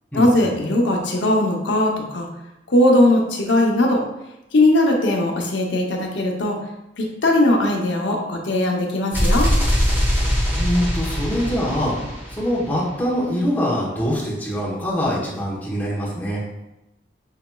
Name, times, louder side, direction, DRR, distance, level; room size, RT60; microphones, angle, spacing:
voice 1, 0.1-2.3 2.7-4.0 4.5-6.6 7.0-9.5, left 1 dB, 85° left, 0 dB, 0.7 m, -19 dB
sound 1, 9.1-13.0, equal, 10° right, 1.0 m, -21 dB
voice 2, 10.6-16.4, equal, 10° left, -7 dB, 1.0 m, -24 dB
5.7 x 2.9 x 2.3 m, 0.92 s
head